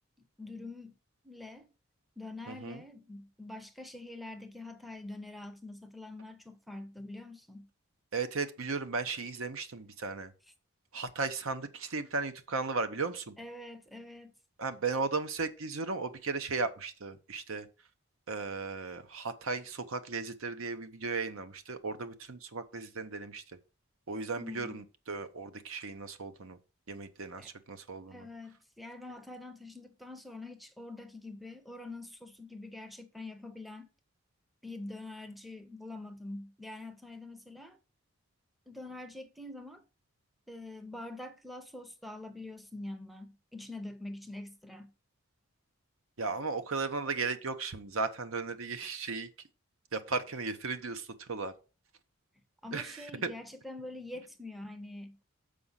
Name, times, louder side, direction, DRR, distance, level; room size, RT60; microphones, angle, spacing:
voice 1, 0.4-1.0 1.2-1.7 2.2-7.7 13.4-14.3 24.4-24.8 27.4-27.5 28.1-33.9 34.6-37.8 38.7-39.8 40.5-44.9 52.6-55.2, left 2 dB, ahead, 0.6 m, -45 dB
voice 2, 2.5-2.8 8.1-10.3 10.9-13.4 14.6-17.7 18.3-23.4 24.1-26.6 26.9-28.3 46.2-49.3 49.9-51.5 52.7-53.0, right 4 dB, 70° right, 0.8 m, -36 dB
6.8 x 4.9 x 5.7 m
head